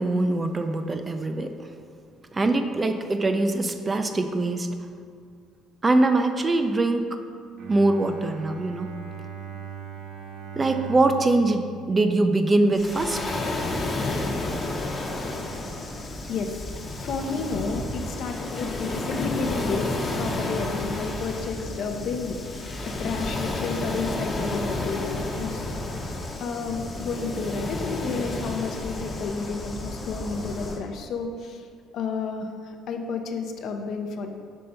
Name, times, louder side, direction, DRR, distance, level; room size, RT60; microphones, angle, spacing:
voice 1, 0.0-1.5 2.3-4.7 5.8-7.2 7.7-8.9 10.6-13.2, right 2 dB, 25° right, 7 dB, 0.4 m, -23 dB
Bowed string instrument, 7.6-12.8, right 7 dB, 65° right, 0.8 m, -40 dB
Waves surf, 12.7-30.8, left 2 dB, 30° left, 0.8 m, -31 dB
voice 2, 15.9-25.7 26.4-31.7 31.9-34.3, left 4 dB, 60° left, 5 dB, 0.5 m, -31 dB
5.3 x 3.3 x 5.5 m, 2.2 s
cardioid pair, 115°, 0 cm